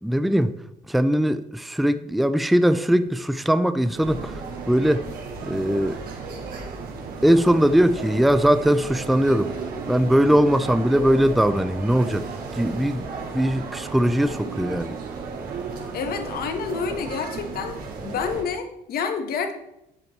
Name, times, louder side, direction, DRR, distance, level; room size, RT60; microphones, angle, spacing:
voice 1, 0.0-0.5 0.9-4.4 4.7-5.1 5.4-6.0 7.2-9.6 9.9-12.3 12.6-13.1 13.3-15.0, equal, ahead, 11 dB, 0.5 m, -20 dB
sound 1, 3.9-18.4, right 4 dB, 60° right, 3.2 m, -34 dB
voice 2, 15.9-19.5, left 6 dB, 65° left, 7 dB, 1.7 m, -29 dB
11.5 x 8.2 x 4.6 m, 0.84 s
cardioid pair, 110°, 17 cm